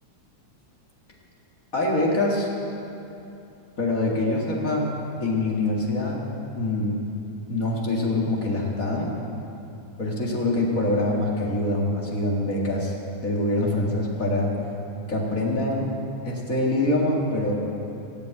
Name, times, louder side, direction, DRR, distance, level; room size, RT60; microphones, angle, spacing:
voice 1, 1.7-2.5 3.8-4.9 5.2-6.2 6.6-7.0 7.5-9.1 10.0-12.9 13.2-14.5 15.1-15.9 16.2-17.7, left 2 dB, 30° left, -3 dB, 1.8 m, -24 dB
17.5 x 7.4 x 8.9 m, 2.8 s
omnidirectional pair, 3.6 m